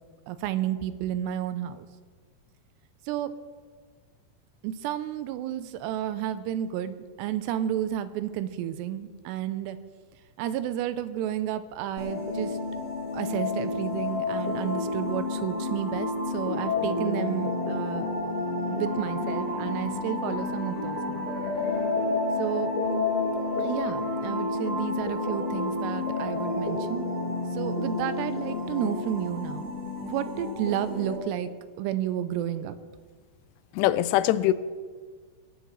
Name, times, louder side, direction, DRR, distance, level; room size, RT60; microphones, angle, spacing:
voice 1, 0.3-1.9 3.1-3.3 4.6-9.8 10.4-12.6 13.1-18.1 18.7-21.3 22.4-22.7 23.6-27.1 27.5-29.7 30.0-31.5 31.8-32.8, right 11 dB, 85° right, 2.7 m, -31 dB
sound 1, 12.0-31.2, left 3 dB, 70° left, 6.9 m, -30 dB
voice 2, 33.8-34.5, left 13 dB, 90° left, 2.8 m, -22 dB
22.0 x 11.0 x 3.2 m
omnidirectional pair, 4.9 m